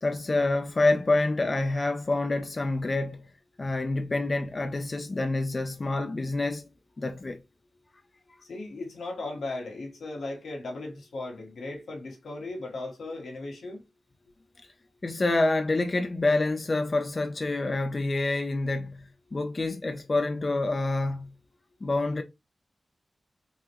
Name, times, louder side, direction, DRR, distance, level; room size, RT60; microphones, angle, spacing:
voice 1, 0.0-3.3 3.6-6.7 7.0-7.4 15.0-21.3 21.8-22.2, left 2 dB, 45° left, 0.4 m, -27 dB
voice 2, 8.5-13.8, left 2 dB, 85° left, 1.1 m, -37 dB
3.7 x 2.1 x 2.8 m
cardioid pair, 60°, 0 cm